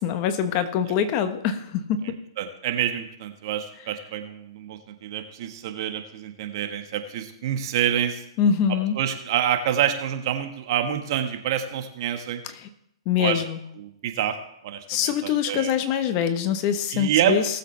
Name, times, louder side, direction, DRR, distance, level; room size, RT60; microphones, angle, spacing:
voice 1, 0.0-2.1 8.4-8.9 12.6-12.7 13.1-13.6 14.9-17.4, left 8 dB, 40° left, 9 dB, 1.2 m, -24 dB
voice 2, 2.4-8.2 8.9-12.4 13.2-13.4 13.8-14.4 14.6-15.8 16.9-17.4, right 10 dB, 55° right, 6 dB, 1.6 m, -27 dB
19.0 x 7.6 x 3.4 m, 0.77 s
hypercardioid pair, 130°, 3 cm